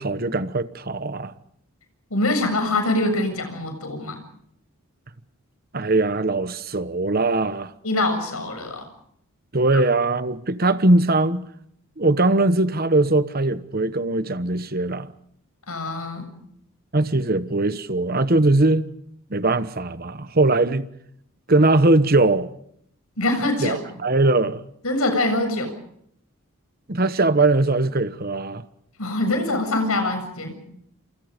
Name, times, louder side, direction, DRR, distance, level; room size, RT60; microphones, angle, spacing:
voice 1, 0.0-1.3 5.7-7.7 9.5-11.5 12.0-15.1 16.9-18.9 19.3-20.9 21.5-22.5 23.6-24.6 26.9-28.6, right 2 dB, 40° right, 1.1 m, -20 dB
voice 2, 2.1-4.2 7.8-8.9 9.7-9.8 15.7-16.3 23.2-23.8 24.8-25.7 29.0-30.6, left 2 dB, 75° left, 7.5 m, -24 dB
28.5 x 28.0 x 5.2 m
head